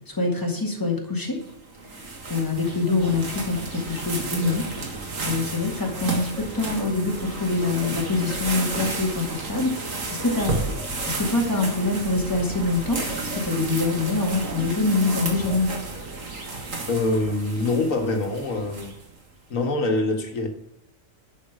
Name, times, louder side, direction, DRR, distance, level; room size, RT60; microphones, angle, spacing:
voice 1, 0.1-1.4 2.3-4.6 5.2-10.5 11.1-13.0 13.3-15.8, left 3 dB, 15° left, 0 dB, 2.1 m, -25 dB
sound 1, 1.4-19.2, right 3 dB, 80° right, 2.3 m, -32 dB
voice 2, 16.9-18.9 19.5-20.5, left 2 dB, 85° left, 4 dB, 1.8 m, -24 dB
11.0 x 5.3 x 6.1 m, 0.82 s
omnidirectional pair, 1.3 m